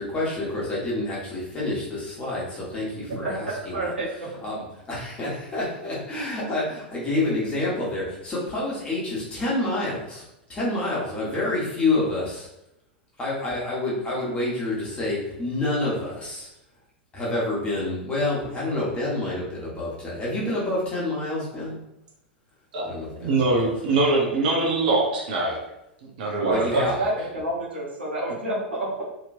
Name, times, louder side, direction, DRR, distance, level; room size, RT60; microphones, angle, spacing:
voice 1, 0.0-2.4 2.7-2.9 3.1-3.9 4.4-4.6 4.9-10.2 10.5-12.4 13.2-16.4 17.1-21.7 22.8-23.4 26.5-27.0, left 2 dB, 20° left, -6 dB, 1.4 m, -28 dB
voice 2, 3.2-4.3 26.4-29.0, right 1 dB, 80° right, -5 dB, 1.0 m, -28 dB
voice 3, 23.1-25.6 26.0-27.1, right 2 dB, 55° right, -1 dB, 0.8 m, -23 dB
3.0 x 2.9 x 2.6 m, 0.84 s
figure-of-eight pair, 95°, 6 cm